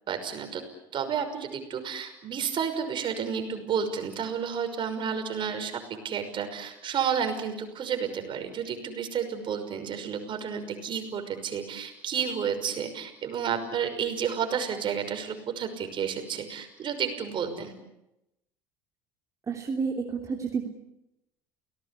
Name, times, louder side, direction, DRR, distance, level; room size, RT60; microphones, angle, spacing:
voice 1, 0.1-0.6 0.9-17.7, right 7 dB, 45° right, 7 dB, 5.7 m, -31 dB
voice 2, 19.5-20.7, right 5 dB, 30° right, 1 dB, 3.3 m, -30 dB
29.5 x 18.5 x 8.6 m, 0.91 s
hypercardioid pair, 75°, 11 cm